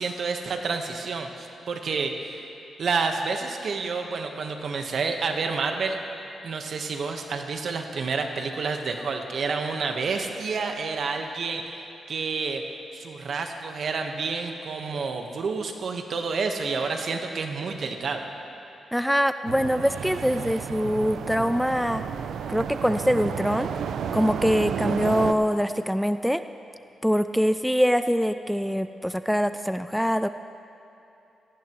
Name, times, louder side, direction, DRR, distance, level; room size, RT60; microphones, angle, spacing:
voice 1, 0.0-2.5 2.8-6.0 6.4-11.7 12.1-12.6 12.9-18.2, right 4 dB, 65° right, 4 dB, 1.2 m, -29 dB
voice 2, 18.9-22.0 22.5-23.7 24.1-26.4 27.0-30.3, equal, ahead, 11 dB, 0.3 m, -24 dB
sound 1, 19.5-25.3, right 7 dB, 85° right, 0.5 m, -31 dB
18.5 x 14.5 x 3.1 m, 2.8 s
cardioid pair, 80°, 0 cm